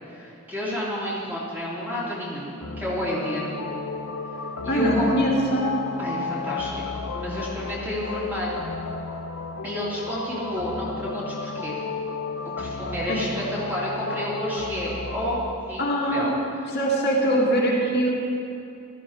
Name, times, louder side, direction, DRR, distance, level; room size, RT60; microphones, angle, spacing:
voice 1, 0.1-3.5 4.6-5.1 6.0-8.6 9.6-11.8 12.6-16.3, equal, 10° right, -7 dB, 2.8 m, -30 dB
sound 1, 2.6-15.6, left 3 dB, 85° left, 0.9 m, -33 dB
voice 2, 4.7-5.7 13.1-13.2 15.8-16.3 16.7-18.1, right 1 dB, 50° left, -4 dB, 2.2 m, -22 dB
16.5 x 13.0 x 4.3 m, 2.6 s
head